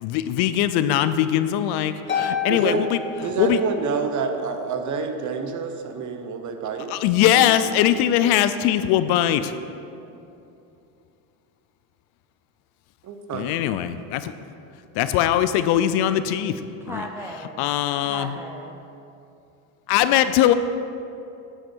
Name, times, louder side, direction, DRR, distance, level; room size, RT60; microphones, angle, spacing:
voice 1, 0.0-3.0 3.4-3.6 6.9-9.5 13.3-14.3 15.0-16.6 16.9-17.0 17.6-18.3 19.9-20.5, left 11 dB, 55° left, 12 dB, 0.6 m, -21 dB
Harp, 2.1-4.0, left 7 dB, 25° left, 1.8 m, -29 dB
voice 2, 2.5-2.8 3.2-6.9 7.3-7.7 13.0-13.5, right 5 dB, 40° right, 6 dB, 1.0 m, -28 dB
voice 3, 16.8-17.7 18.0-18.8, right 1 dB, 5° right, 1 dB, 0.3 m, -37 dB
9.3 x 8.0 x 4.5 m, 2.7 s
supercardioid pair, 105°, 47 cm